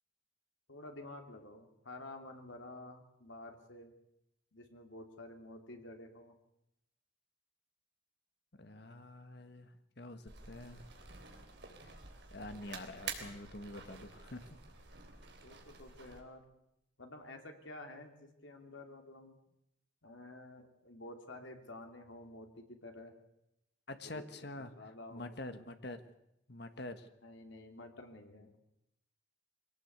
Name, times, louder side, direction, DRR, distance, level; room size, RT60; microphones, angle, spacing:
voice 1, 0.7-3.9 4.5-6.4 15.4-16.4 17.0-19.3 20.0-23.1 24.0-25.3 27.2-28.5, left 2 dB, 75° left, 4 dB, 3.1 m, -51 dB
voice 2, 8.5-10.9 11.8-11.9 12.3-14.6 23.9-26.0 26.5-27.1, left 2 dB, 55° left, 9 dB, 1.5 m, -47 dB
sound 1, 10.3-16.2, right 5 dB, 55° right, 3.6 m, -49 dB
23.0 x 17.5 x 8.2 m, 0.81 s
head